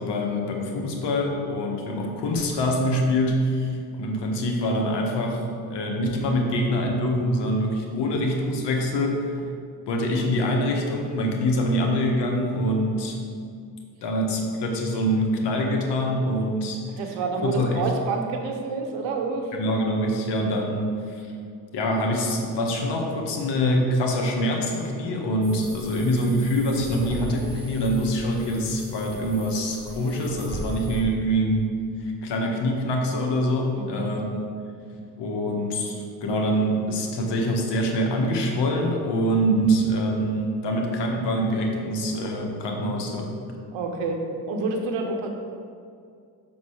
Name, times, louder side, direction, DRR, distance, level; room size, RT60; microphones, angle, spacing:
voice 1, 0.0-9.4 9.9-13.2 14.0-16.8 17.4-17.9 19.5-21.3 21.7-31.6 32.0-34.4 35.2-43.3, equal, 70° left, 1 dB, 1.4 m, -25 dB
voice 2, 17.0-19.5 25.9-26.0 30.6-30.9 33.7-34.1 43.7-44.2 44.5-45.3, right 4 dB, 90° right, 3 dB, 1.0 m, -28 dB
sound 1, 25.4-31.0, right 1 dB, 10° right, 1.6 m, -38 dB
6.3 x 4.0 x 6.3 m, 2.3 s
supercardioid pair, 65°, 43 cm